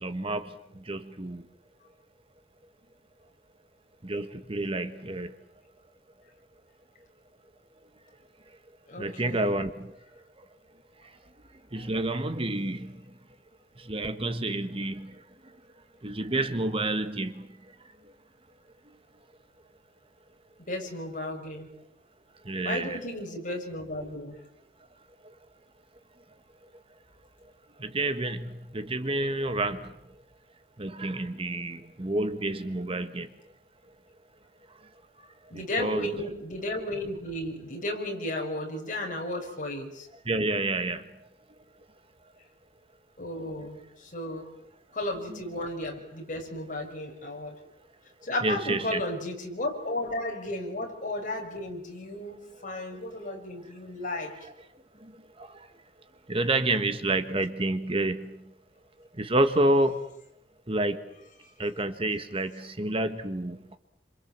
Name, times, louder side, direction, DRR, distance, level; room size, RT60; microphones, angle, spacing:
voice 1, 0.0-0.5 0.9-1.4 4.0-5.3 9.0-9.9 11.7-12.9 13.9-15.1 16.0-17.4 22.5-23.0 27.8-29.9 30.8-33.3 35.5-36.1 40.3-41.0 45.3-45.4 48.4-49.0 54.4-54.5 56.3-58.4 59.2-60.0 60.7-61.0 61.6-63.8, right 2 dB, 30° right, 9 dB, 1.5 m, -29 dB
voice 2, 8.9-9.6 11.7-11.8 20.7-21.7 22.6-24.4 35.5-40.1 43.2-44.5 44.9-47.6 48.2-54.5 61.4-61.5, left 1 dB, 45° left, 2 dB, 6.5 m, -34 dB
29.0 x 27.0 x 7.5 m, 0.77 s
head